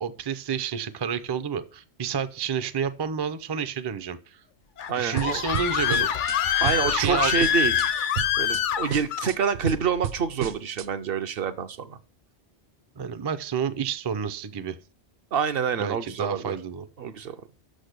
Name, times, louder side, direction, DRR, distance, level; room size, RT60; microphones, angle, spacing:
voice 1, 0.0-4.4 4.9-6.1 6.6-7.3 13.0-14.8 15.8-16.9, right 7 dB, 35° right, 11 dB, 0.4 m, -30 dB
Screaming, 4.8-9.3, left 9 dB, 55° left, 0.7 m, -25 dB
voice 2, 4.9-5.4 6.6-7.9 8.4-12.0 15.3-16.6 17.0-17.5, right 7 dB, 65° right, 9 dB, 0.8 m, -27 dB
sound 1, 5.2-6.4 6.7-7.9 8.2-8.6 8.9-10.9, right 10 dB, 90° right, 0.9 m, -33 dB
6.4 x 6.0 x 6.6 m, 0.38 s
omnidirectional pair, 1.1 m